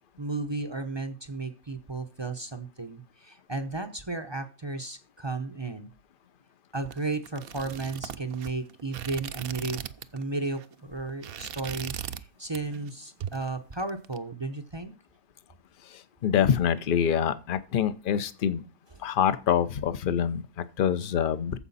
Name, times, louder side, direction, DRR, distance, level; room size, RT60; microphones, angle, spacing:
voice 1, 0.2-5.9 6.7-9.8 10.1-14.9, right 3 dB, 25° right, 7 dB, 0.7 m, -34 dB
sound 1, 6.8-10.2 10.5-10.7 11.1-12.3 12.5-12.9 13.2-14.2, right 9 dB, 60° right, 0.7 m, -39 dB
voice 2, 16.2-18.6 19.0-21.6, left 8 dB, 45° left, 12 dB, 0.8 m, -25 dB
14.5 x 5.0 x 4.1 m, 0.33 s
omnidirectional pair, 1.4 m